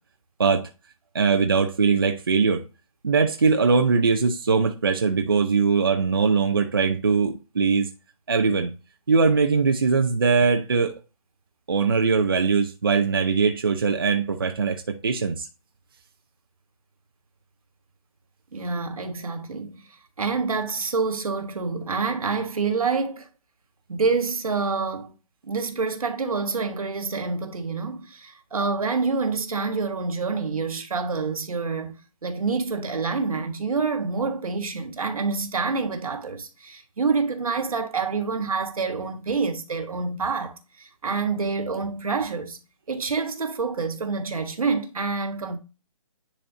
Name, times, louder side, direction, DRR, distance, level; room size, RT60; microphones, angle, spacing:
voice 1, 1.1-2.6 3.0-7.9 8.3-8.7 9.1-10.9 11.7-15.5, right 5 dB, 40° right, 0.6 m, -21 dB
voice 2, 18.5-19.8 20.2-23.3 23.9-25.1 25.4-42.6 42.9-45.6, right 4 dB, 75° right, 1.5 m, -27 dB
10.5 x 4.2 x 2.6 m
hypercardioid pair, 180°, 18 cm